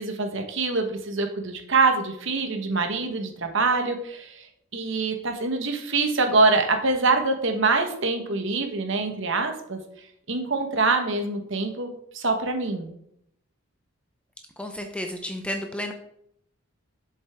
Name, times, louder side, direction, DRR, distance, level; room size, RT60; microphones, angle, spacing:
voice 1, 0.0-4.5 4.7-9.8 10.3-12.9, right 3 dB, 55° right, 5 dB, 1.2 m, -24 dB
voice 2, 14.6-15.9, left 1 dB, 5° left, 5 dB, 0.6 m, -32 dB
7.6 x 7.3 x 3.6 m, 0.73 s
head